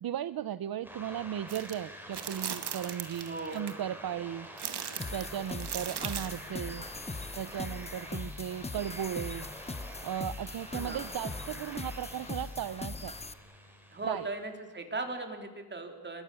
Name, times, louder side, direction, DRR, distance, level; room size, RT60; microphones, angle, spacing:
voice 1, 0.0-4.5 5.1-6.9 7.4-9.5 9.7-13.2 14.0-14.3, right 10 dB, 65° right, 14 dB, 0.7 m, -36 dB
sound 1, 0.8-14.5, equal, 5° right, 4.3 m, -48 dB
sound 2, 1.5-1.7 2.1-3.7 4.6-6.4, right 8 dB, 85° right, 2.1 m, -38 dB
voice 2, 3.1-3.7 10.4-11.0 13.9-16.2, right 3 dB, 25° right, 5 dB, 3.7 m, -38 dB
sound 3, 5.0-13.3, left 3 dB, 15° left, 0.8 m, -40 dB
29.0 x 22.5 x 7.0 m, 1.3 s
wide cardioid pair, 135°, 39 cm